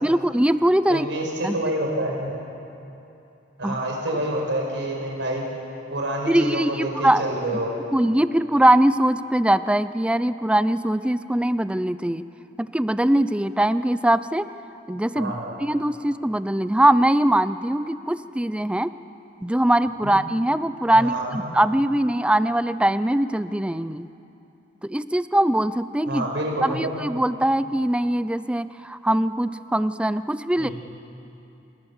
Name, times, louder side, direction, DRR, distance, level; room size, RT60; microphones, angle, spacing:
voice 1, 0.0-1.1 1.4-1.6 3.6-3.8 6.3-7.2 7.9-12.2 12.7-14.5 14.9-15.3 15.6-18.9 19.4-24.1 24.8-26.3 26.6-30.7, right 1 dB, 5° right, 13 dB, 0.4 m, -21 dB
voice 2, 0.9-2.3 3.6-5.4 5.9-7.7 15.1-15.5 20.0-20.1 20.9-21.4 26.1-26.9 30.5-30.7, right 1 dB, 80° right, 0 dB, 5.3 m, -27 dB
28.0 x 18.5 x 7.3 m, 2.9 s
head